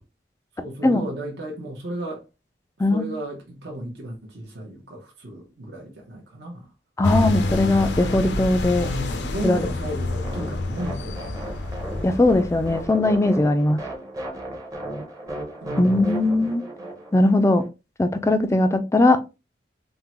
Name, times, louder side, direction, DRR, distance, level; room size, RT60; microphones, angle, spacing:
voice 1, 0.6-2.2 2.9-6.7 8.8-11.3 15.6-16.3, right 1 dB, 65° right, 0.8 m, -34 dB
voice 2, 2.8-3.1 7.0-8.9 9.4-9.6 12.0-13.8 15.8-16.6 17.1-17.6 18.0-19.2, left 2 dB, 15° left, 0.3 m, -19 dB
sound 1, 7.0-12.9, left 2 dB, 75° left, 0.5 m, -28 dB
sound 2, 10.2-17.7, right 1 dB, 20° right, 0.7 m, -35 dB
3.5 x 2.1 x 2.9 m
head